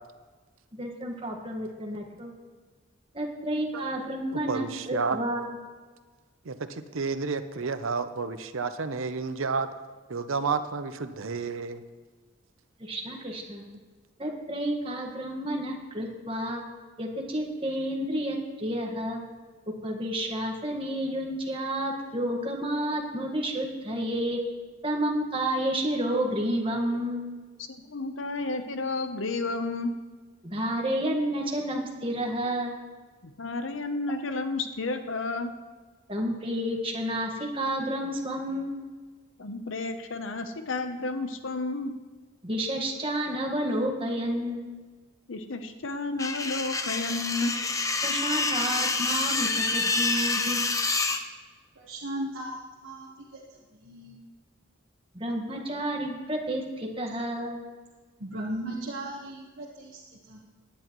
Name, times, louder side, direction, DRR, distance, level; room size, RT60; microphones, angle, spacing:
voice 1, 0.7-2.3 3.1-5.4 12.8-13.6 14.2-16.6 17.0-19.2 19.8-24.4 24.8-27.3 30.4-32.8 36.1-38.7 42.4-44.6 48.0-50.6 55.1-57.6, right 1 dB, 25° right, 1 dB, 1.5 m, -30 dB
voice 2, 4.5-5.2 6.4-9.7 10.1-11.8, right 4 dB, 90° right, 10 dB, 0.7 m, -30 dB
voice 3, 27.7-29.9 33.2-35.5 39.4-41.9 45.3-47.8, left 3 dB, 75° left, 8 dB, 0.8 m, -32 dB
sound 1, 46.2-51.2, left 3 dB, 15° left, 0.6 m, -27 dB
voice 4, 51.8-54.2 58.2-60.0 60.3-60.4, right 1 dB, 75° right, -4 dB, 1.4 m, -37 dB
17.0 x 10.5 x 3.1 m, 1.4 s
head